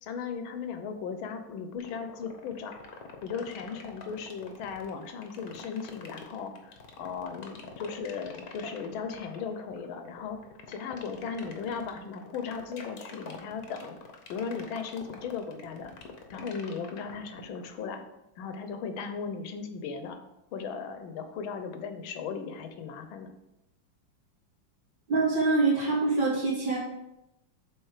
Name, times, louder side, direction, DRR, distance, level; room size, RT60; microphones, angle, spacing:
voice 1, 0.0-2.8 3.2-10.4 10.7-14.0 14.3-15.9 16.3-18.0 18.4-20.2 20.5-23.3, left 6 dB, 80° left, 7 dB, 1.6 m, -37 dB
sound 1, 1.8-17.7, left 5 dB, 55° left, 1.2 m, -46 dB
voice 2, 25.1-26.8, right 3 dB, 70° right, -7 dB, 3.1 m, -25 dB
8.0 x 3.8 x 4.9 m, 0.88 s
omnidirectional pair, 2.2 m